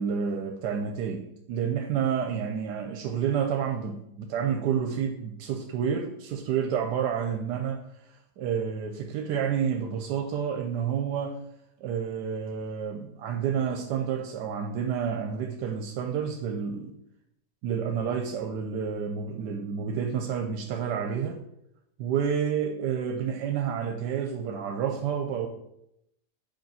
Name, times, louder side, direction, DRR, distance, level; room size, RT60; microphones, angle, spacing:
voice 1, 0.0-7.8 8.4-11.4 11.8-16.9 17.6-21.4 22.0-25.5, right 7 dB, 85° right, 5 dB, 1.2 m, -29 dB
5.1 x 4.7 x 5.4 m, 0.80 s
omnidirectional pair, 1.8 m